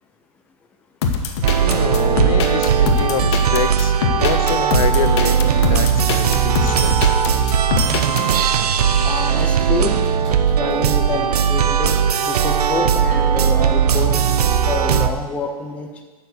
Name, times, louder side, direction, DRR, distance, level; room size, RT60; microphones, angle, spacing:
sound 1, 1.0-8.2, left 5 dB, 45° left, 1.2 m, -22 dB
sound 2, 1.4-15.1, right 8 dB, 90° right, 0.8 m, -18 dB
voice 1, 1.6-7.2, left 9 dB, 65° left, 11 dB, 0.8 m, -26 dB
sound 3, 4.2-4.3 4.6-7.0 7.5-8.1 8.5-10.9 11.9-12.0, right 3 dB, 30° right, 3.1 m, -45 dB
voice 2, 9.0-10.0 10.6-12.0 12.2-14.3 14.7-16.0, left 4 dB, 5° left, 3 dB, 0.5 m, -27 dB
8.3 x 7.1 x 8.3 m, 1.3 s
supercardioid pair, 170°, 19 cm